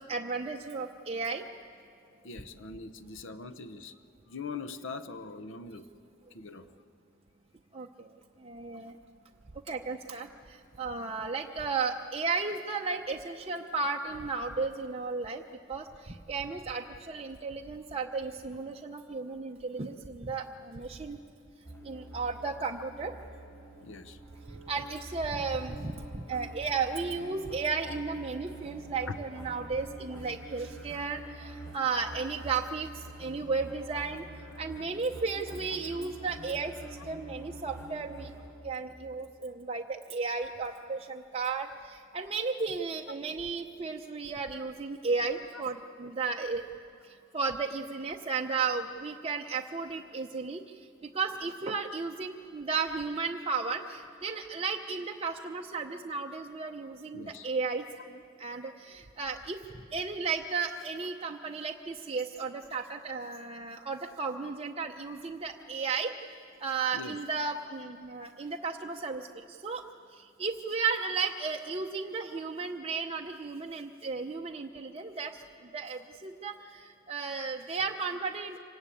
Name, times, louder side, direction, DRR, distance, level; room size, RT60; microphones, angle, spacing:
voice 1, 0.1-1.5 7.7-9.0 9.7-15.4 15.7-21.2 21.8-23.1 24.5-34.3 34.6-38.3 38.6-46.6 47.0-59.6 59.9-66.1 66.6-69.8 70.1-75.4 75.7-78.6, right 4 dB, 30° right, 2 dB, 0.7 m, -34 dB
voice 2, 2.2-3.9 4.3-5.8 6.3-6.7 23.8-24.2 29.1-29.2 57.1-57.5 66.9-67.2, left 4 dB, 65° left, 11 dB, 0.8 m, -42 dB
sound 1, 21.6-38.5, right 1 dB, 15° left, 5.5 m, -46 dB
26.0 x 19.0 x 8.4 m, 2.5 s
head